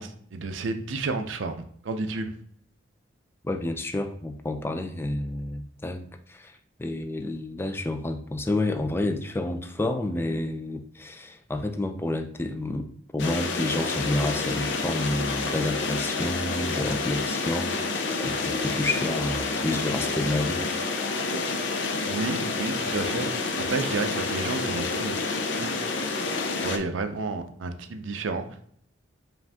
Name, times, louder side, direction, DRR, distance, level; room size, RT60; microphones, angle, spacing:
voice 1, 0.0-2.3 21.9-25.2 25.6-25.7 26.6-28.5, right 3 dB, 80° right, 7 dB, 0.5 m, -31 dB
voice 2, 3.4-20.7, left 2 dB, 10° left, 6 dB, 0.4 m, -30 dB
sound 1, 13.2-26.8, left 3 dB, 65° left, 0.6 m, -29 dB
4.9 x 2.5 x 3.5 m, 0.62 s
head